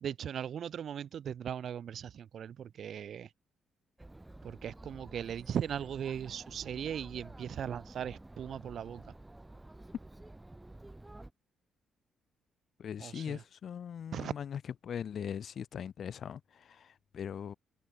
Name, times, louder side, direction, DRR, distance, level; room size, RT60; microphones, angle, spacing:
voice 1, 0.0-3.3 4.4-9.0 13.0-13.4 14.1-14.3, right 9 dB, 60° right, 0.4 m, -38 dB
Chatter, 4.0-11.3, right 2 dB, 10° right, 2.5 m, -51 dB
voice 2, 12.8-17.5, left 8 dB, 55° left, 1.5 m, -40 dB
cardioid pair, 90°, 0 cm